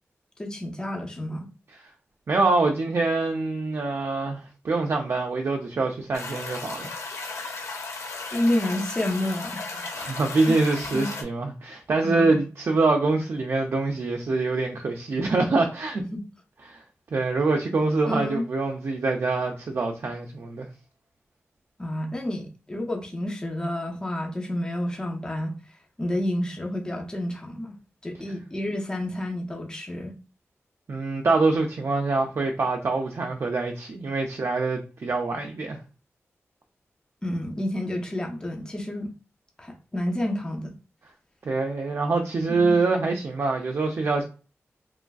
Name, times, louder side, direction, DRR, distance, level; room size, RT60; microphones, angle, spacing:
voice 1, 0.4-1.5 8.3-10.1 10.5-10.6 10.9-11.1 12.0-12.3 16.1-16.2 18.1-18.5 21.8-25.5 26.0-27.8 28.0-30.1 37.2-39.1 39.6-40.7 42.5-42.8, left 1 dB, 15° left, 0.5 m, -29 dB
voice 2, 2.3-6.9 7.3-7.5 9.9-16.0 16.6-16.8 17.1-20.7 30.9-35.8 41.4-44.2, right 3 dB, 60° right, 0.4 m, -25 dB
sound 1, 6.1-11.2, left 3 dB, 80° left, 0.6 m, -35 dB
3.0 x 2.5 x 2.3 m
wide cardioid pair, 130°, 5 cm